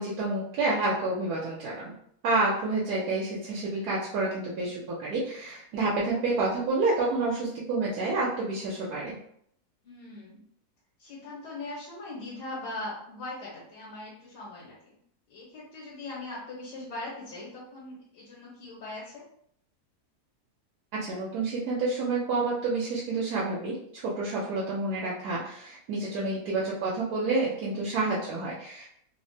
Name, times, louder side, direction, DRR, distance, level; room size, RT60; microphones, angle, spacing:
voice 1, 0.0-2.0 2.2-9.2 21.0-28.9, right 3 dB, 75° right, -5 dB, 1.1 m, -29 dB
voice 2, 9.8-10.4 11.0-15.0 15.3-19.2 26.1-26.3, left 2 dB, 85° left, -7 dB, 1.5 m, -40 dB
3.3 x 2.1 x 2.6 m, 0.68 s
omnidirectional pair, 1.7 m